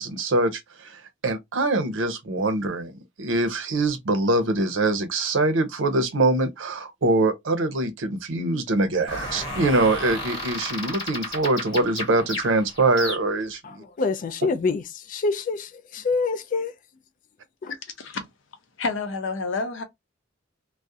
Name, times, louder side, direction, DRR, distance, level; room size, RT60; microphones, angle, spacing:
voice 1, 0.0-2.9 3.2-13.6, right 2 dB, 80° right, 0.6 m, -23 dB
sound 1, 9.1-13.5, left 1 dB, 25° left, 1.2 m, -33 dB
voice 2, 13.6-16.7 17.6-17.7, left 4 dB, 45° left, 0.3 m, -26 dB
voice 3, 17.7-18.2 18.8-19.8, left 3 dB, 85° left, 0.7 m, -29 dB
2.3 x 2.0 x 2.6 m
head